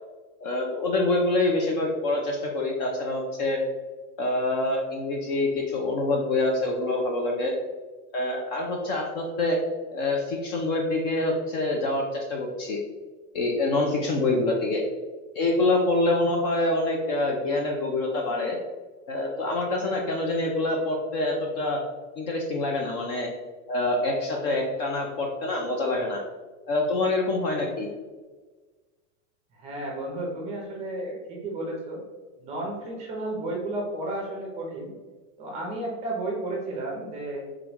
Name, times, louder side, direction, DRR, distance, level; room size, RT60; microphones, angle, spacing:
voice 1, 0.4-3.6 4.2-7.5 8.1-9.6 9.9-12.8 13.3-14.8 15.4-18.6 19.1-21.8 22.2-23.3 23.7-26.2 26.7-27.9, left 2 dB, 40° left, 1 dB, 0.4 m, -26 dB
voice 2, 29.5-32.0 32.4-34.9 35.4-37.4, right 2 dB, 20° right, -1 dB, 0.6 m, -32 dB
3.5 x 3.4 x 2.9 m, 1.3 s
supercardioid pair, 175°, 36 cm